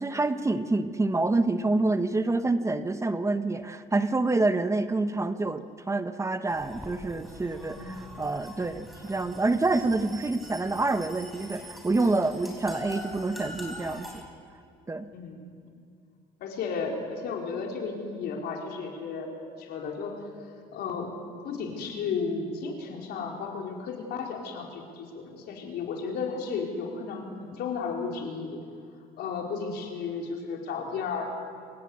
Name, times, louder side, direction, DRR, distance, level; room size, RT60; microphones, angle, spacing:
voice 1, 0.0-14.1 14.9-15.1, right 2 dB, 15° right, 10 dB, 1.0 m, -27 dB
sound 1, 6.5-14.2, equal, ahead, 5.4 m, -44 dB
voice 2, 7.5-7.9 15.1-15.5 16.4-19.3 19.6-20.1 20.7-21.1 21.4-28.6 29.2-31.3, left 5 dB, 75° left, 0 dB, 4.5 m, -34 dB
26.5 x 18.0 x 8.6 m, 2.3 s
cardioid pair, 110°, 17 cm